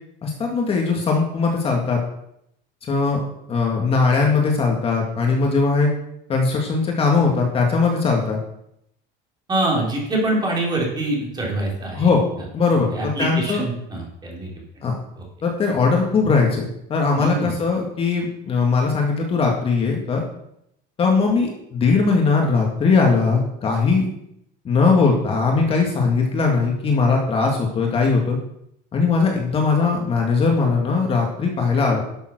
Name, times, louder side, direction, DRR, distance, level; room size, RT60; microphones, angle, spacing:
voice 1, 0.2-2.0 2.9-3.2 3.5-5.9 6.3-8.4 11.9-12.2 12.5-13.6 14.8-14.9 15.4-20.2 21.0-24.1 24.6-28.4 28.9-32.0, left 4 dB, 30° left, 0 dB, 2.1 m, -20 dB
voice 2, 9.5-12.1 12.9-14.5 15.2-15.3 17.2-17.5, right 2 dB, 20° right, -2 dB, 3.6 m, -24 dB
11.5 x 7.2 x 6.2 m, 0.77 s
cardioid pair, 155°, 20 cm